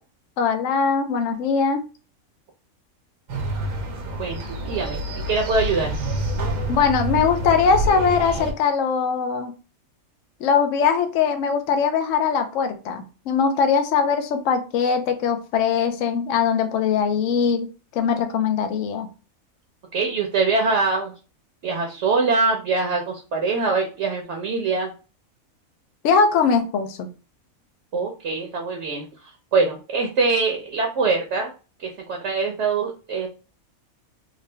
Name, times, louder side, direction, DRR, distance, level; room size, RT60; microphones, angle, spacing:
voice 1, 0.4-1.8 6.7-9.5 10.4-19.1 26.0-27.1, left 6 dB, 70° left, 6 dB, 0.9 m, -21 dB
sound 1, 3.3-8.5, right 1 dB, 85° right, 1.3 m, -27 dB
voice 2, 4.2-5.9 19.9-21.1 21.6-24.9 27.9-29.1 29.5-31.5 31.8-33.3, right 4 dB, 60° right, 1 dB, 0.9 m, -23 dB
3.7 x 2.2 x 3.2 m, 0.33 s
omnidirectional pair, 1.5 m